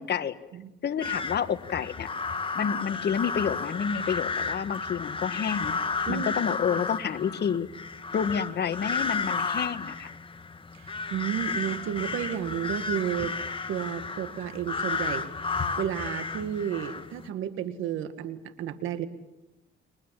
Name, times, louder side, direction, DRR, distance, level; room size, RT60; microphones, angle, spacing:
voice 1, 0.0-0.3 0.8-2.1 2.5-5.8 6.1-7.7 8.1-10.1, left 7 dB, 55° left, 10 dB, 1.6 m, -29 dB
sound 1, 1.0-17.3, left 4 dB, 25° left, 1.7 m, -33 dB
voice 2, 10.7-13.4 13.7-15.3 15.8-19.1, right 10 dB, 90° right, 11 dB, 1.8 m, -32 dB
30.0 x 23.5 x 7.5 m, 0.98 s
cardioid pair, 90°, 20 cm